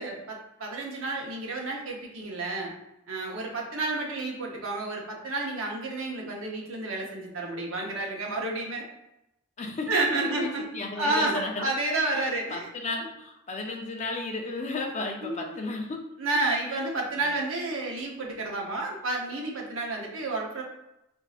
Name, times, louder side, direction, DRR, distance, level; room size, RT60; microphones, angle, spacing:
voice 1, 0.0-2.7 3.1-8.8 9.9-10.7 11.0-13.1 15.2-15.6 16.2-20.6, right 2 dB, 75° right, -1 dB, 0.8 m, -30 dB
voice 2, 9.6-9.9 10.2-11.7 12.1-16.0 17.2-17.3, left 3 dB, 35° left, 2 dB, 0.5 m, -34 dB
4.5 x 2.6 x 2.4 m, 0.87 s
head